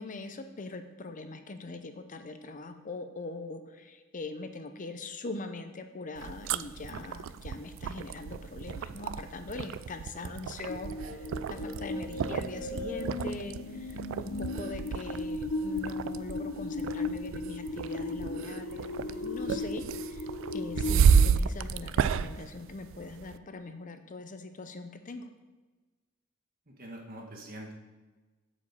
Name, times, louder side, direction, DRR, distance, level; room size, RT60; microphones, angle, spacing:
voice 1, 0.0-20.3 20.5-25.2, left 3 dB, 40° left, 8 dB, 0.6 m, -42 dB
sound 1, 6.2-23.4, right 6 dB, 65° right, 0.3 m, -31 dB
sound 2, 10.7-21.4, left 2 dB, 70° left, 0.8 m, -36 dB
voice 2, 26.7-27.8, right 1 dB, 45° right, 1 dB, 1.5 m, -44 dB
8.5 x 5.1 x 7.0 m, 1.3 s
head